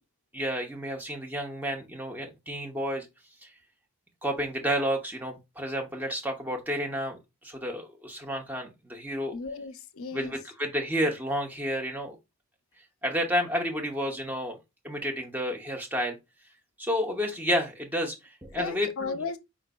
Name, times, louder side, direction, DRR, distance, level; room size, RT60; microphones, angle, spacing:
voice 1, 0.3-3.1 3.4-3.5 4.2-9.3 10.1-12.2 13.0-14.6 14.8-16.2 16.8-19.2, equal, 10° right, 0.7 m, -31 dB
voice 2, 9.3-10.3 18.5-19.4, left 4 dB, 70° left, 0.5 m, -35 dB
5.0 x 3.9 x 2.2 m
head